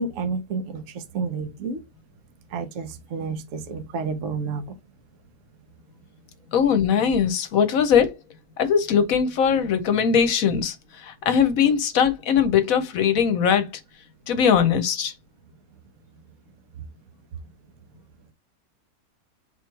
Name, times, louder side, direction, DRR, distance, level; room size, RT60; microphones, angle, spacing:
voice 1, 0.0-1.8 2.5-4.6, right 4 dB, 60° right, 1.0 m, -30 dB
voice 2, 6.5-8.1 8.6-13.7 14.3-15.1, left 7 dB, 65° left, 1.1 m, -20 dB
3.9 x 3.0 x 4.4 m
omnidirectional pair, 1.7 m